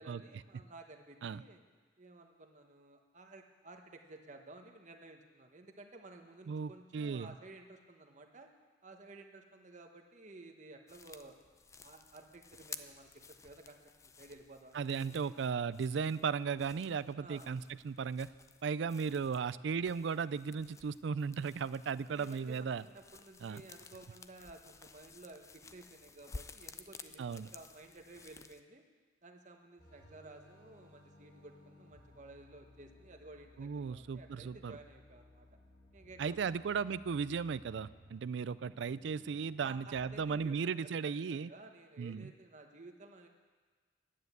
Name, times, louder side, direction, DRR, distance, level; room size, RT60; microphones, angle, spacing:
voice 1, 0.0-1.6 2.0-8.5 8.8-11.4 11.8-15.3 17.2-17.5 22.1-28.8 29.2-35.5 35.9-36.6 39.6-43.3, right 2 dB, 40° right, 4 dB, 1.1 m, -54 dB
voice 2, 6.5-7.3 14.7-18.3 18.6-22.8 23.4-23.6 27.2-27.5 33.6-34.8 36.2-41.5 42.0-42.3, right 6 dB, 70° right, 17 dB, 0.4 m, -36 dB
sound 1, 10.9-28.6, left 4 dB, 15° left, 0.3 m, -54 dB
sound 2, 29.8-40.4, left 1 dB, 60° left, 3.9 m, -60 dB
10.5 x 9.4 x 8.0 m, 1.5 s
head